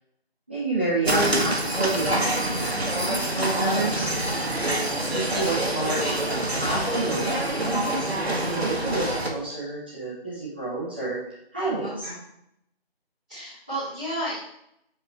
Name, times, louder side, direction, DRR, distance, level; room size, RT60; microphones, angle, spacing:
voice 1, 0.5-4.1 5.1-11.2 11.5-12.1, right 2 dB, 10° right, -11 dB, 1.5 m, -29 dB
sound 1, 1.0-9.3, right 1 dB, 80° right, 1.6 m, -26 dB
voice 2, 11.8-12.1 13.3-14.4, right 1 dB, 5° left, -20 dB, 1.3 m, -33 dB
8.1 x 6.0 x 3.3 m, 0.76 s
figure-of-eight pair, 170°, 31 cm